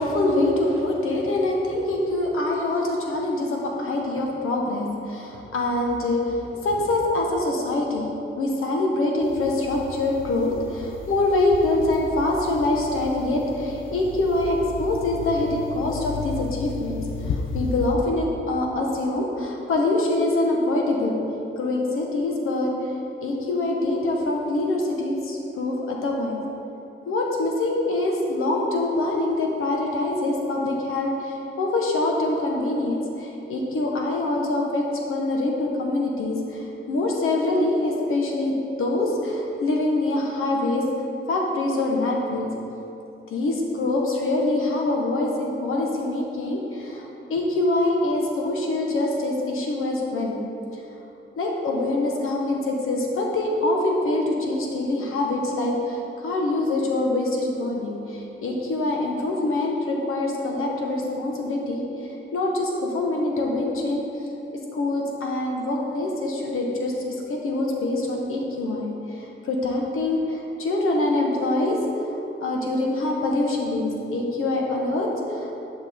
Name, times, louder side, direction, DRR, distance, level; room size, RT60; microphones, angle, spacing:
voice 1, 0.0-8.1 8.4-21.2 21.6-22.9 23.2-26.4 27.1-38.5 38.8-40.9 41.3-42.5 43.3-50.4 50.7-50.8 51.4-64.0 64.5-67.0 67.3-71.8 72.4-75.5, left 2 dB, 90° left, -1 dB, 1.2 m, -25 dB
sound 1, 9.2-18.0, left 5 dB, 70° left, 0.5 m, -34 dB
10.0 x 6.0 x 3.6 m, 2.9 s
wide cardioid pair, 155°, 21 cm